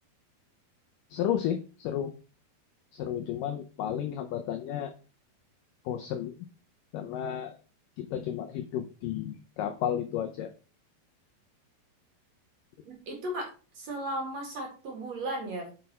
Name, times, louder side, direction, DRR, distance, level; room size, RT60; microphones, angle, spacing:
voice 1, 1.1-2.1 2.9-4.9 5.9-6.4 6.9-7.6 8.0-10.5, left 10 dB, 85° left, 6 dB, 1.9 m, -32 dB
voice 2, 12.9-13.5 13.7-15.7, right 1 dB, 50° right, 1 dB, 2.8 m, -35 dB
7.7 x 5.4 x 4.2 m, 0.36 s
omnidirectional pair, 4.7 m